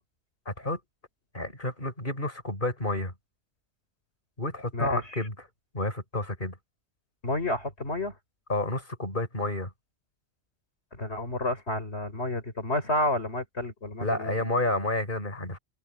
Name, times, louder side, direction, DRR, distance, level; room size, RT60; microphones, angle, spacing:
voice 1, 0.5-0.8 1.3-3.1 4.4-5.3 5.7-6.6 8.5-9.7 14.0-15.6, left 2 dB, 45° left, 5.9 m, -30 dB
voice 2, 7.2-8.1 10.9-14.5, left 1 dB, 70° left, 4.5 m, -30 dB
open air
omnidirectional pair, 1.2 m